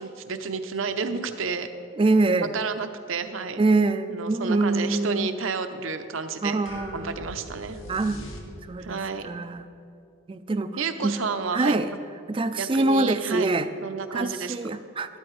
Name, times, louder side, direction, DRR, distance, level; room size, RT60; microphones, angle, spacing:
voice 1, 0.0-1.7 2.5-3.6 4.1-6.6 6.9-7.8 8.8-9.3 10.8-11.8 12.6-13.5 13.8-14.6, right 5 dB, 70° right, 8 dB, 0.7 m, -30 dB
voice 2, 2.0-2.5 3.6-5.3 6.4-7.2 7.9-8.2 8.6-9.7 10.3-10.7 11.0-11.2 11.5-11.9 12.3-13.7 14.1-15.2, right 2 dB, 25° right, 11 dB, 0.4 m, -24 dB
sound 1, 6.7-8.9, left 1 dB, 70° left, 1.6 m, -40 dB
13.5 x 12.5 x 3.2 m, 2.5 s
head